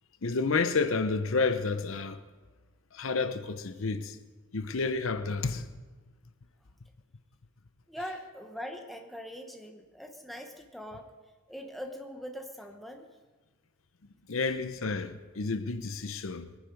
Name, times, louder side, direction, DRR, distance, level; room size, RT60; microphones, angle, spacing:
voice 1, 0.2-2.2 2.9-4.2 4.5-5.7 14.3-16.5, left 4 dB, 70° left, 0.8 m, -30 dB
voice 2, 7.9-11.1 11.5-13.1, equal, ahead, 1.0 m, -42 dB
21.0 x 10.0 x 5.3 m
head